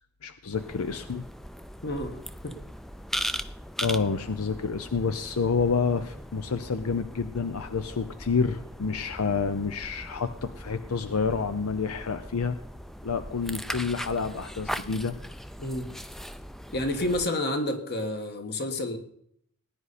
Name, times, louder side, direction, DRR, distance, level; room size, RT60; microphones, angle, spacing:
voice 1, 0.2-1.2 3.8-12.6 13.0-15.2, left 5 dB, 80° left, 0.6 m, -28 dB
sound 1, 0.5-17.3, equal, ahead, 0.4 m, -39 dB
voice 2, 1.8-2.6 15.6-16.0 16.7-19.0, left 1 dB, 50° left, 1.5 m, -30 dB
19.0 x 9.8 x 4.2 m
head